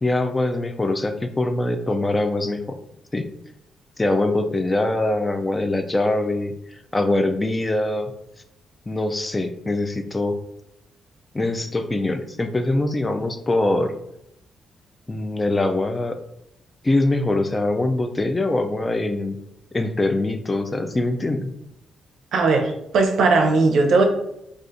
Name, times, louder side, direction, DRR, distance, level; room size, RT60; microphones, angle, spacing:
voice 1, 0.0-2.8 3.1-3.3 4.0-6.5 6.9-8.1 8.9-10.4 11.3-13.9 15.1-16.2 16.8-19.4 19.7-21.5, left 2 dB, 20° left, 7 dB, 0.3 m, -23 dB
voice 2, 22.3-24.0, right 3 dB, 70° right, 3 dB, 0.5 m, -18 dB
3.5 x 2.4 x 2.6 m, 0.80 s
cardioid pair, 90°, 0 cm